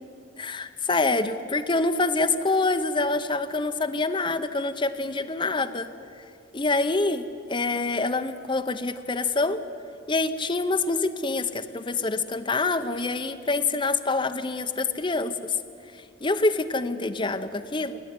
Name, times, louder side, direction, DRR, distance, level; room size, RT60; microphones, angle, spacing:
voice 1, 0.4-5.9 6.5-9.6 10.1-15.3 16.2-18.0, left 3 dB, 25° left, 7 dB, 0.7 m, -26 dB
27.5 x 11.0 x 9.5 m, 2.4 s
head